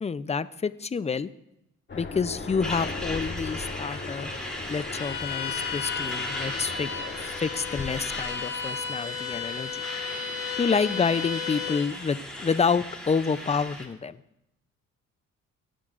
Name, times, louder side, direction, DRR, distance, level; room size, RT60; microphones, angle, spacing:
voice 1, 0.0-1.3 1.9-4.3 4.7-6.9 7.4-9.8 10.6-14.2, left 5 dB, 20° left, 15 dB, 0.5 m, -28 dB
Aircraft, 1.9-9.0, left 3 dB, 40° left, 2.4 m, -39 dB
Truck, 2.6-13.9, left 1 dB, 5° left, 3.1 m, -38 dB
Bowed string instrument, 4.9-11.9, left 6 dB, 75° left, 2.3 m, -34 dB
20.0 x 10.0 x 2.5 m, 0.83 s
cardioid pair, 90°, 30 cm